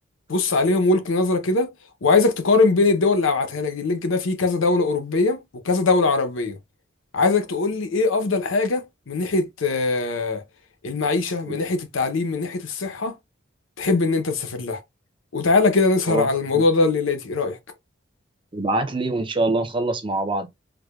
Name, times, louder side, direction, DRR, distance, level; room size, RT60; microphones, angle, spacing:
voice 1, 0.3-1.7 2.0-6.6 7.1-10.4 10.8-13.2 13.8-14.8 15.3-17.6, left 3 dB, 75° left, 0.7 m, -21 dB
voice 2, 18.5-20.5, right 2 dB, 25° right, 0.5 m, -24 dB
4.7 x 2.2 x 2.3 m
head